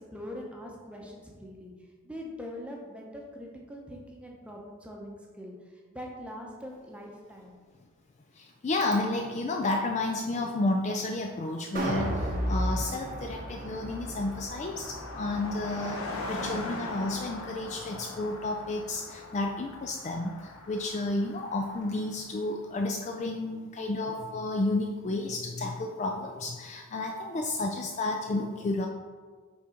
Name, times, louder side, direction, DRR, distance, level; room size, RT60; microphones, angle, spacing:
voice 1, 0.1-1.7 2.0-5.5 5.9-7.6, equal, 5° right, -1 dB, 0.8 m, -42 dB
voice 2, 8.4-28.9, left 2 dB, 30° left, 2 dB, 0.3 m, -31 dB
Car passing by, 11.0-11.1 11.3-22.3, left 2 dB, 75° left, 0.9 m, -42 dB
sound 1, 11.7-18.0 18.4-18.5, right 1 dB, 40° right, 0.7 m, -35 dB
6.2 x 3.7 x 4.4 m, 1.5 s
head